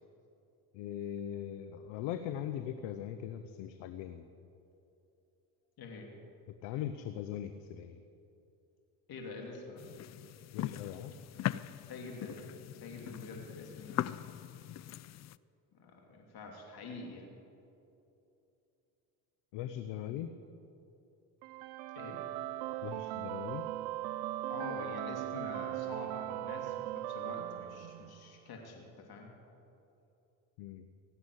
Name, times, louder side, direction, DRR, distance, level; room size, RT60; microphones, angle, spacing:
voice 1, 0.7-4.2 6.6-8.0 10.5-11.1 19.5-20.3 22.8-23.7 30.6-30.8, left 10 dB, 80° left, 9 dB, 0.9 m, -40 dB
voice 2, 5.8-6.1 9.1-9.9 11.9-14.3 15.7-17.4 21.9-22.3 24.5-29.3, left 3 dB, 55° left, 1 dB, 3.1 m, -46 dB
sound 1, 9.8-15.4, left 13 dB, 40° left, 0.4 m, -40 dB
sound 2, 21.4-28.4, right 15 dB, 90° right, 0.5 m, -39 dB
17.5 x 8.2 x 9.8 m, 2.8 s
supercardioid pair, 75°, 43 cm